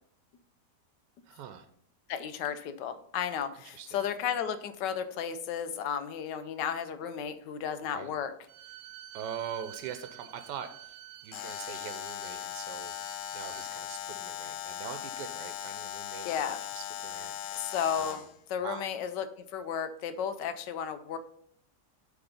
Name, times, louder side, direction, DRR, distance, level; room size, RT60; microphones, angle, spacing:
voice 1, 1.2-1.7 3.7-4.1 7.9-8.1 9.1-17.7 18.0-18.2 18.6-18.9, right 8 dB, 90° right, 8 dB, 1.3 m, -43 dB
voice 2, 2.1-8.3 16.2-16.6 17.5-18.2 18.5-21.2, left 8 dB, 85° left, 10 dB, 1.3 m, -33 dB
Bowed string instrument, 8.5-13.7, right 13 dB, 75° right, 1.1 m, -50 dB
Alarm, 11.3-18.3, left 11 dB, 70° left, 1.0 m, -39 dB
8.0 x 3.5 x 5.1 m, 0.66 s
omnidirectional pair, 1.8 m